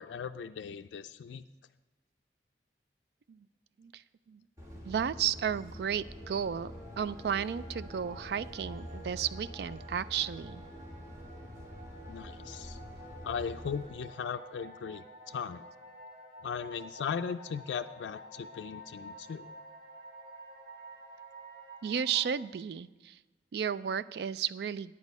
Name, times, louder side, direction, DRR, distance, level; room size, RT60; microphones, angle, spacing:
voice 1, 0.0-1.4 12.1-12.8 13.2-15.6 16.4-19.5, left 6 dB, 90° left, 8 dB, 0.3 m, -38 dB
sound 1, 4.6-13.9, equal, 15° right, 1.9 m, -46 dB
voice 2, 4.8-10.6 21.8-23.2 23.5-24.9, right 8 dB, 60° right, 17 dB, 0.3 m, -33 dB
sound 2, 5.8-22.3, right 1 dB, 30° right, 2.1 m, -51 dB
9.5 x 8.2 x 5.3 m, 1.2 s
head